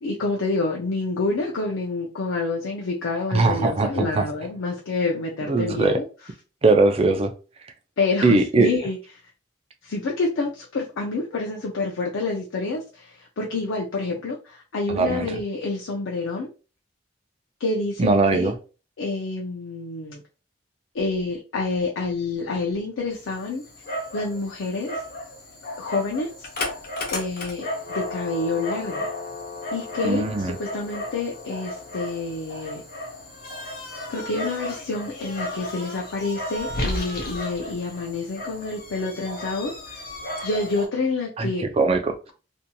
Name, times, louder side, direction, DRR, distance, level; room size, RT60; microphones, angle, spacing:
voice 1, 0.0-6.0 8.0-9.0 9.8-16.5 17.6-18.5 19.0-20.2 20.9-23.6 24.1-25.0 25.8-26.5 27.1-29.1 29.7-32.8 34.1-40.0 40.4-41.6, left 3 dB, 90° left, 0.5 m, -28 dB
voice 2, 3.3-4.2 5.5-6.0 6.6-7.3 8.2-8.7 14.9-15.3 18.0-18.5 30.0-30.5 41.4-42.2, right 3 dB, 30° right, 0.4 m, -20 dB
Dog, 23.1-40.9, left 1 dB, 50° left, 0.7 m, -34 dB
2.8 x 2.6 x 2.2 m
head